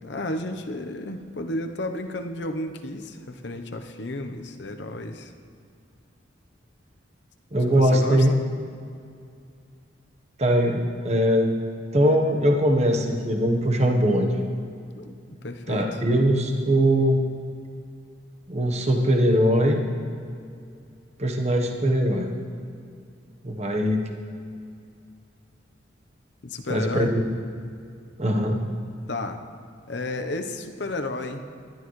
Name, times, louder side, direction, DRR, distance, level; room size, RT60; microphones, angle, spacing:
voice 1, 0.0-5.3 7.6-8.4 15.0-16.0 26.4-27.1 29.1-29.4 29.9-31.4, left 2 dB, 65° left, 6 dB, 0.8 m, -32 dB
voice 2, 7.5-8.3 10.4-11.5 11.9-14.4 15.7-17.1 18.5-19.8 21.2-22.3 23.4-24.0 26.7-27.2 28.2-28.6, equal, 35° right, 2 dB, 1.0 m, -21 dB
20.0 x 12.0 x 3.2 m, 2.4 s
head